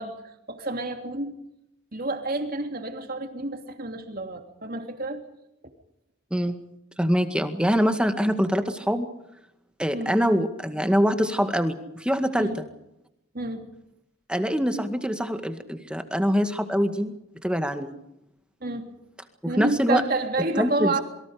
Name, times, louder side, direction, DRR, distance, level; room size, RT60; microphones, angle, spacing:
voice 1, 0.0-1.4 1.9-5.2 9.9-10.2 12.4-12.6 13.3-13.7 18.6-18.9 19.4-21.0, right 2 dB, 45° right, 5 dB, 3.1 m, -29 dB
voice 2, 7.0-9.1 9.8-12.5 14.3-17.1 17.4-17.9 19.4-20.0 20.6-20.9, equal, 5° right, 7 dB, 1.9 m, -24 dB
28.0 x 23.5 x 5.2 m, 0.83 s
head